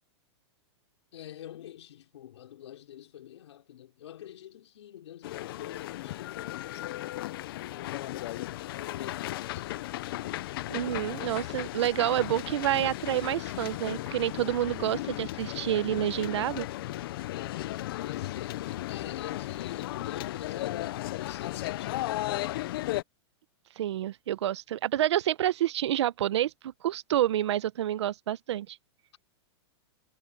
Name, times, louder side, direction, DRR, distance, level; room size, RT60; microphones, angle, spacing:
voice 1, 1.1-7.2 7.7-9.9 18.0-22.2, left 11 dB, 80° left, 5.5 m, -45 dB
sound 1, 5.2-23.0, left 16 dB, 55° left, 0.7 m, -35 dB
voice 2, 10.7-16.7 23.8-28.8, right 12 dB, 75° right, 0.9 m, -28 dB
supercardioid pair, 160°, 15 cm